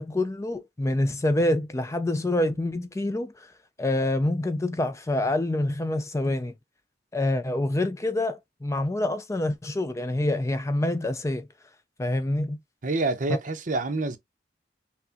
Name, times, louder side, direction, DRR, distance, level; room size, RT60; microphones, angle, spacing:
voice 1, 0.0-3.5 3.8-6.5 7.1-11.5 12.0-12.6, left 1 dB, 15° left, 0.4 m, -26 dB
voice 2, 12.8-14.2, right 3 dB, 45° right, 0.7 m, -27 dB
5.9 x 2.1 x 2.8 m
head